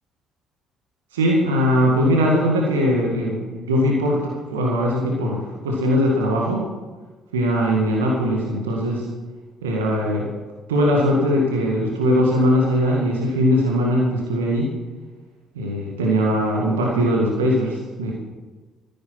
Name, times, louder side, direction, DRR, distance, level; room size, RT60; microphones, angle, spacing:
voice 1, 1.1-6.7 7.3-9.1 9.6-10.3 10.7-14.7 15.5-18.1, equal, 80° right, -2 dB, 1.9 m, -20 dB
14.5 x 9.7 x 5.9 m, 1.3 s
figure-of-eight pair, 50°, 0 cm